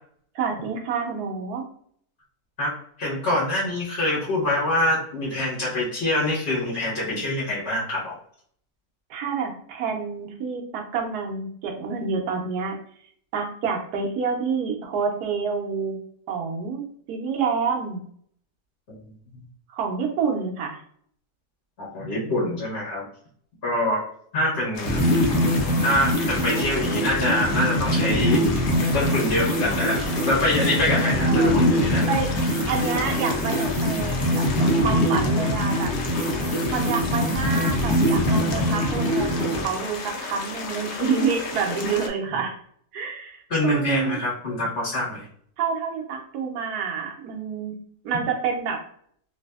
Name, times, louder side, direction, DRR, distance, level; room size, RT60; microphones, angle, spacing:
voice 1, 0.3-1.6 9.1-12.8 13.3-16.0 16.3-18.0 19.7-20.8 31.0-31.8 32.1-32.3 32.7-35.9 36.7-42.6 42.9-44.2 45.6-47.7 48.0-48.8, right 6 dB, 80° right, 2 dB, 1.2 m, -28 dB
voice 2, 3.0-8.1 18.9-19.0 21.8-23.0 23.6-24.0 24.3-25.0 25.8-28.4 28.9-32.0 32.5-32.6 35.1-35.2 43.5-45.2, left 1 dB, 45° left, -7 dB, 1.5 m, -25 dB
sound 1, 24.7-42.1, left 4 dB, 65° left, 0.7 m, -34 dB
sound 2, 24.9-39.6, equal, ahead, 0.7 m, -23 dB
3.2 x 2.6 x 2.3 m, 0.62 s
omnidirectional pair, 1.6 m